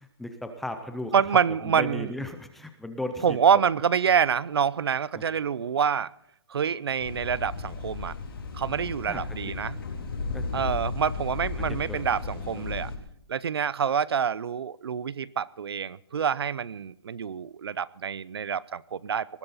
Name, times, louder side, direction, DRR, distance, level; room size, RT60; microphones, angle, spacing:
voice 1, 0.0-1.1 1.5-3.4 5.1-5.2 9.1-9.6 10.3-10.7 11.6-12.0 12.4-12.7, left 1 dB, ahead, 7 dB, 0.5 m, -37 dB
voice 2, 1.1-2.1 3.2-6.1 6.5-8.1 8.5-9.8 10.5-12.9 13.3-19.3, right 7 dB, 70° right, 21 dB, 0.6 m, -26 dB
sound 1, 7.0-13.0, left 4 dB, 60° left, 4.1 m, -34 dB
19.5 x 14.0 x 4.1 m, 0.76 s
hypercardioid pair, 175°, 14 cm